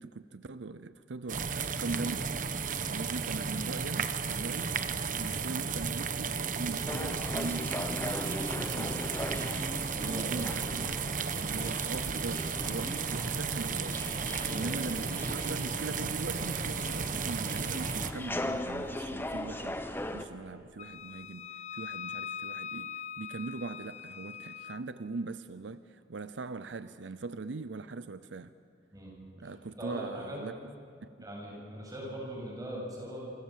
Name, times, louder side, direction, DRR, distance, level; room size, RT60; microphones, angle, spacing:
voice 1, 0.0-2.3 2.9-4.8 5.1-9.6 10.0-11.0 11.4-14.0 14.5-28.5 29.4-30.7, right 3 dB, 80° right, 0.6 m, -41 dB
sound 1, 1.3-18.1, right 5 dB, 45° right, 1.1 m, -34 dB
sound 2, 6.9-20.2, left 1 dB, 10° left, 1.1 m, -39 dB
voice 2, 9.9-10.4 14.4-14.8 28.9-30.4 31.2-33.3, equal, 20° right, 7.5 m, -41 dB
Wind instrument woodwind instrument, 20.8-24.8, left 7 dB, 40° left, 0.7 m, -42 dB
27.5 x 25.5 x 7.5 m
head